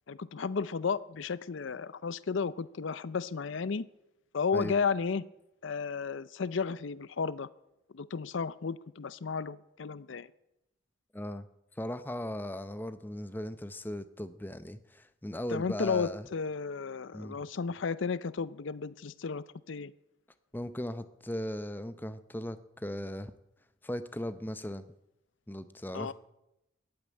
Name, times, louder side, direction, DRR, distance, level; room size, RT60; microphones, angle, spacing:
voice 1, 0.1-3.8 4.3-5.2 5.6-7.5 7.9-10.3 15.5-19.9 25.9-26.1, left 5 dB, 70° left, 18 dB, 0.5 m, -33 dB
voice 2, 11.1-11.5 11.8-16.2 17.1-17.4 20.5-23.3 23.8-24.8 25.5-26.1, left 1 dB, 10° left, 12 dB, 0.6 m, -38 dB
15.0 x 8.8 x 9.7 m, 0.89 s
head